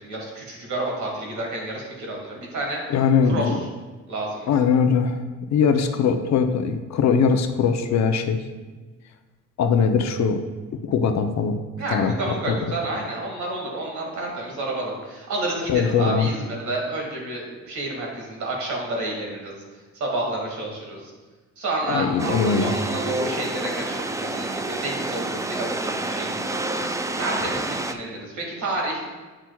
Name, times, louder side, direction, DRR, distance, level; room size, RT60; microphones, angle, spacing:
voice 1, 0.0-2.8 3.2-3.5 4.1-4.5 11.8-19.5 19.9-21.1 21.6-26.7 27.2-29.0, right 2 dB, 70° right, -1 dB, 2.1 m, -30 dB
voice 2, 2.9-3.6 4.5-5.2 5.5-8.4 9.6-10.4 10.8-11.6 11.9-12.1 12.5-12.6 15.7-16.3 21.9-22.7, left 6 dB, 65° left, 7 dB, 0.7 m, -21 dB
sound 1, 22.2-27.9, right 2 dB, 10° right, 0.4 m, -28 dB
8.8 x 6.0 x 2.3 m, 1.3 s
cardioid pair, 90°, 30 cm